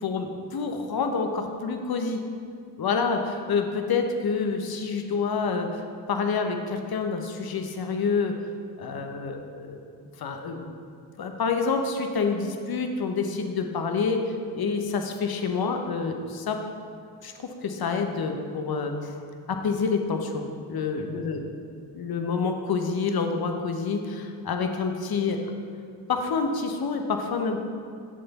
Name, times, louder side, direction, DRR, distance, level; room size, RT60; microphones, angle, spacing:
voice 1, 0.0-2.2 2.8-5.7 6.1-8.4 8.8-9.8 10.2-10.7 11.2-16.6 17.2-19.2 19.5-21.4 21.9-25.4 26.1-27.6, left 5 dB, 55° left, 5 dB, 1.0 m, -28 dB
7.5 x 6.7 x 4.2 m, 2.3 s
supercardioid pair, 45°, 44 cm